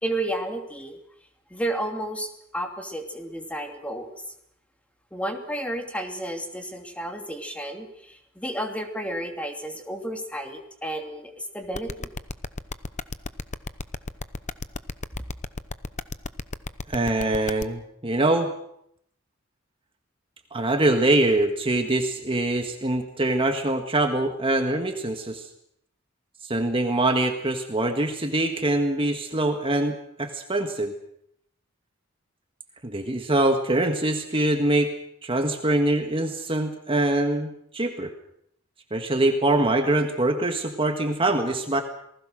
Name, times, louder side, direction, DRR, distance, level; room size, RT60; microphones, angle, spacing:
voice 1, 0.0-1.0 1.5-4.2 5.1-12.1, right 1 dB, 5° left, 4 dB, 2.8 m, -32 dB
sound 1, 11.7-17.6, left 3 dB, 35° left, 0.9 m, -32 dB
voice 2, 16.9-18.5 20.5-25.5 26.4-30.9 32.8-34.9 35.2-38.1 38.9-41.8, right 2 dB, 25° right, 5 dB, 1.7 m, -24 dB
28.0 x 19.5 x 6.4 m, 0.71 s
head